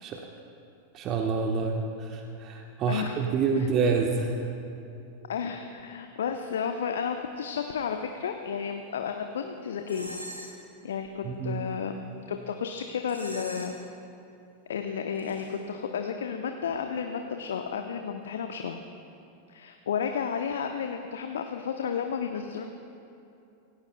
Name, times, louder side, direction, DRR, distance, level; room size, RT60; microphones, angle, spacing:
voice 1, 0.9-4.5 11.2-11.6, right 4 dB, 35° right, 2 dB, 1.2 m, -28 dB
voice 2, 2.9-3.2 3.6-3.7 5.3-10.2 10.8-11.9 12.3-13.7 14.7-18.8 19.5-22.7, left 7 dB, 65° left, 5 dB, 0.8 m, -32 dB
sound 1, 9.9-10.6 13.1-14.0 15.2-15.6, equal, 85° right, 3.6 m, -42 dB
26.0 x 17.5 x 2.3 m, 2.7 s
figure-of-eight pair, 90°, 0 cm